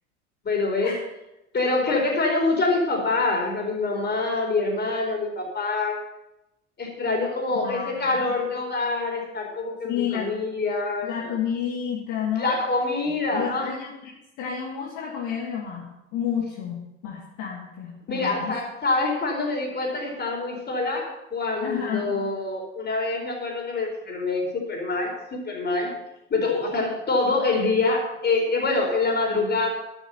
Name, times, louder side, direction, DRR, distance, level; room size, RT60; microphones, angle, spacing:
voice 1, 0.4-0.9 1.5-6.0 6.8-11.3 12.4-13.7 18.1-25.9 26.3-29.7, left 3 dB, 25° left, 1 dB, 4.5 m, -25 dB
voice 2, 7.5-8.4 9.8-10.3 11.0-12.6 13.3-18.6 21.6-22.2 26.4-26.8, left 8 dB, 55° left, -2 dB, 2.5 m, -31 dB
11.5 x 8.4 x 7.1 m, 0.91 s
figure-of-eight pair, 70°, 36 cm